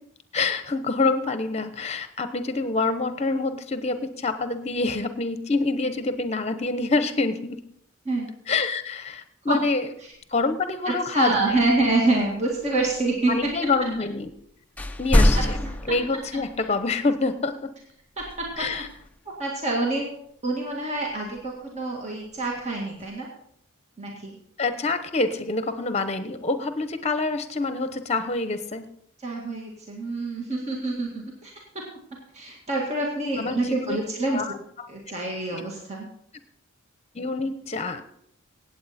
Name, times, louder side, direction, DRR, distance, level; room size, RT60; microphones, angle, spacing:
voice 1, 0.3-7.6 8.5-9.9 10.3-11.3 13.3-14.3 15.0-15.6 15.9-17.7 18.6-18.9 24.6-28.8 33.4-34.0 34.3-34.5 37.1-38.2, left 3 dB, 30° left, 10 dB, 0.9 m, -26 dB
sound 1, 10.2-10.3 11.4-14.4 14.8-16.9 18.2-19.3 21.1-21.7 22.3-23.1, left 1 dB, 5° left, 0.5 m, -27 dB
voice 2, 10.9-13.9 15.3-16.0 16.3-16.4 18.2-18.9 19.3-20.1 20.4-23.3 24.0-24.4 29.2-34.4 34.9-36.1, right 2 dB, 30° right, -1 dB, 2.0 m, -27 dB
17.0 x 8.3 x 4.3 m, 0.70 s
head